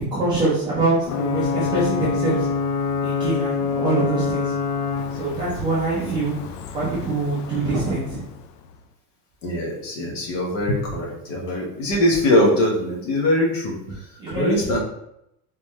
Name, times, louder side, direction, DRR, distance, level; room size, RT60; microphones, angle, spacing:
voice 1, 0.1-2.5 3.0-4.5 5.1-6.4 6.7-8.2 14.2-14.8, right 2 dB, 10° right, -10 dB, 0.4 m, -24 dB
Ocean / Boat Water vehicle / Alarm, 1.0-8.6, left 5 dB, 85° left, 0.6 m, -27 dB
voice 2, 9.4-13.8 14.3-14.8, left 1 dB, 55° left, 0 dB, 1.4 m, -21 dB
4.1 x 3.1 x 3.6 m, 0.80 s
cardioid pair, 180°, 46 cm